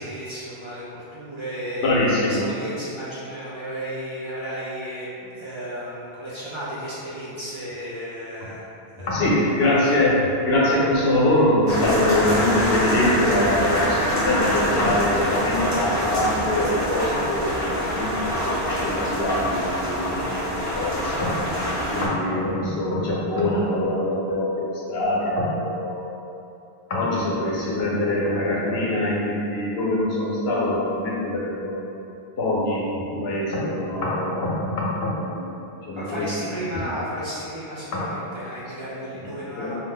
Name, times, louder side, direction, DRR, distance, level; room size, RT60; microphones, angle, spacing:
voice 1, 0.0-8.7 8.9-9.3 9.6-10.0 35.9-39.8, equal, 40° right, -9 dB, 0.4 m, -33 dB
voice 2, 1.8-2.4 9.0-21.3 21.9-26.1 26.9-31.8 32.4-35.5 35.8-36.3 36.7-36.8 39.6-39.7, left 1 dB, 75° left, -5 dB, 0.9 m, -23 dB
sound 1, 11.7-22.1, equal, 20° left, 0.5 m, -25 dB
2.8 x 2.1 x 3.5 m, 2.7 s
omnidirectional pair, 1.1 m